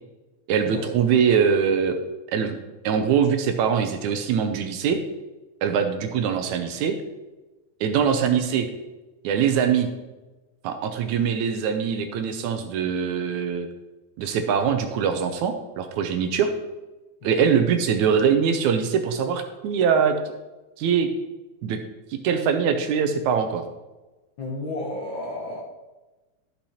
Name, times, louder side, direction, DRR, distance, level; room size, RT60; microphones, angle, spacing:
voice 1, 0.5-2.0 2.3-2.6 2.8-5.0 5.6-7.0 7.8-8.7 9.2-9.9 10.6-13.7 14.2-16.5 17.2-20.2 20.8-21.1 21.6-21.8 22.1-23.6, right 7 dB, 75° right, 7 dB, 2.0 m, -22 dB
voice 2, 17.2-17.5 24.4-25.6, left 2 dB, 60° left, -1 dB, 1.3 m, -32 dB
13.5 x 5.9 x 4.2 m, 1.1 s
omnidirectional pair, 3.6 m